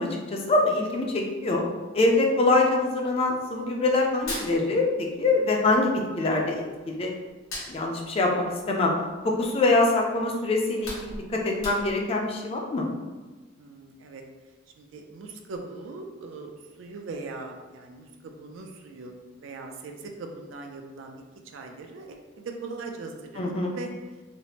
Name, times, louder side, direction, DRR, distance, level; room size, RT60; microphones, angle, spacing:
voice 1, 0.0-1.7 1.9-7.1 7.7-8.9 9.2-12.9 23.4-23.7, left 2 dB, 30° left, 1 dB, 0.3 m, -24 dB
Hands, 4.2-5.4 5.6-6.9 7.3-9.6 10.1-10.2 10.6-12.2, left 1 dB, 90° left, 1.0 m, -39 dB
voice 2, 13.6-14.2 14.8-21.2 21.5-23.9, right 3 dB, 80° right, 3 dB, 0.4 m, -40 dB
3.1 x 2.0 x 2.8 m, 1.3 s
head